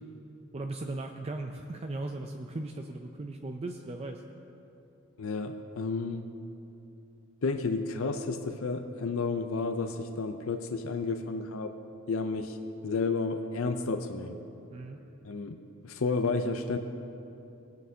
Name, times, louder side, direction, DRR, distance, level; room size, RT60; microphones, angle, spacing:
voice 1, 0.5-4.2 14.7-15.0, right 2 dB, 30° right, 4 dB, 0.4 m, -37 dB
voice 2, 5.2-6.3 7.4-11.7 12.1-12.6 12.8-14.4 15.2-16.8, left 4 dB, 70° left, 7 dB, 0.5 m, -31 dB
19.0 x 9.2 x 2.8 m, 2.8 s
head